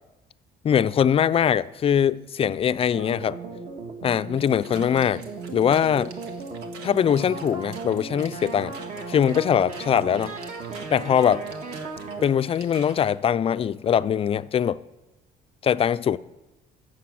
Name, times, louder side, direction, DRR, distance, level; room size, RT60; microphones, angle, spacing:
voice 1, 0.6-3.4 4.0-5.2 5.5-6.1 6.8-8.7 9.1-10.3 10.9-11.4 12.2-14.8 15.6-16.2, left 8 dB, 35° left, 0.4 m, -22 dB
sound 1, 2.9-12.3, right 4 dB, 45° right, 1.5 m, -36 dB
sound 2, 4.4-13.1, right 5 dB, 90° right, 1.2 m, -47 dB
14.5 x 7.6 x 6.3 m
cardioid pair, 110°, 17 cm